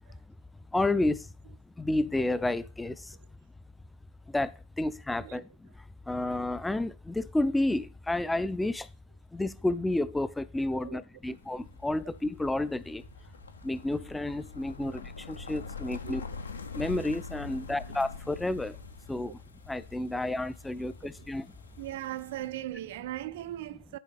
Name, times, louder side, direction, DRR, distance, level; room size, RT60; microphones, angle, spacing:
voice 1, 0.7-1.3 1.8-3.2 4.3-8.9 9.3-13.0 13.6-16.2 16.7-18.8 19.1-19.4 19.7-21.5, left 2 dB, 5° left, 0.4 m, -31 dB
sound 1, 11.2-22.5, left 4 dB, 75° left, 0.8 m, -45 dB
voice 2, 21.8-24.0, right 14 dB, 55° right, 0.4 m, -38 dB
10.0 x 3.9 x 5.0 m
figure-of-eight pair, 90°, 0 cm